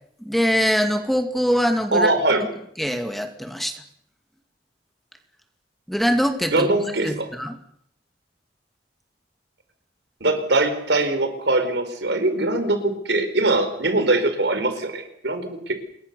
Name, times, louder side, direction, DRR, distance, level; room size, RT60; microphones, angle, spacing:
voice 1, 0.2-2.1 2.8-3.7 5.9-6.7 7.0-7.6, equal, ahead, 6 dB, 2.2 m, -22 dB
voice 2, 1.9-2.5 6.5-7.3 10.2-15.7, right 2 dB, 75° right, 9 dB, 4.5 m, -22 dB
27.0 x 21.5 x 6.9 m, 0.70 s
head